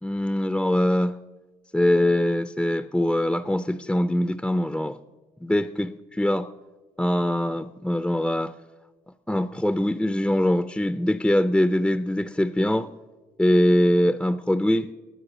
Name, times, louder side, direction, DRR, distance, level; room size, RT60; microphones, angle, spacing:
voice 1, 0.0-1.2 1.7-5.0 5.4-6.5 7.0-8.5 9.3-12.9 13.4-14.9, left 1 dB, 5° left, 11 dB, 0.4 m, -23 dB
18.5 x 9.0 x 6.0 m, 1.3 s
cardioid pair, 110°, 17 cm